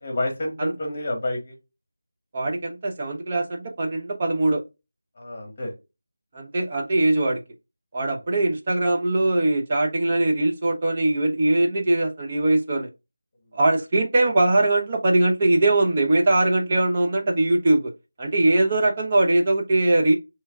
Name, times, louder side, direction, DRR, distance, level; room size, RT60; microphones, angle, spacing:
voice 1, 0.0-1.6 5.2-5.7, left 1 dB, 30° left, 1.4 m, -29 dB
voice 2, 2.3-4.6 6.3-7.4 7.9-12.9 13.5-17.9 18.2-20.1, right 2 dB, 25° right, 0.7 m, -21 dB
4.5 x 3.2 x 2.3 m
figure-of-eight pair, 175°, 0 cm